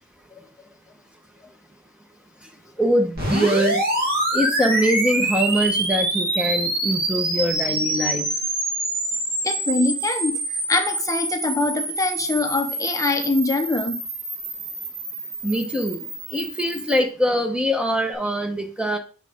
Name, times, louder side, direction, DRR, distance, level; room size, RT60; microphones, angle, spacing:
voice 1, 2.8-3.8 4.3-8.3 15.4-19.0, equal, 5° right, 0.9 m, -23 dB
sound 1, 3.1-17.0, right 1 dB, 45° right, 2.5 m, -26 dB
voice 2, 9.4-10.4 10.7-14.0, left 2 dB, 15° left, 0.8 m, -23 dB
6.5 x 6.1 x 3.6 m
head